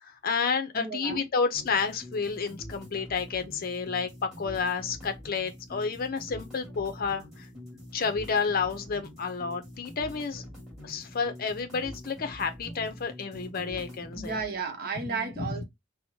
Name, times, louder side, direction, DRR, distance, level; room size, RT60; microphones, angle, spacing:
voice 1, 0.0-7.5 7.9-10.4 10.8-14.4 15.1-15.5, left 5 dB, 50° left, 0.5 m, -30 dB
voice 2, 0.7-1.3 14.1-15.6, right 4 dB, 50° right, 0.9 m, -33 dB
sound 1, 1.5-14.5, equal, 5° right, 1.8 m, -45 dB
4.3 x 2.1 x 2.6 m
head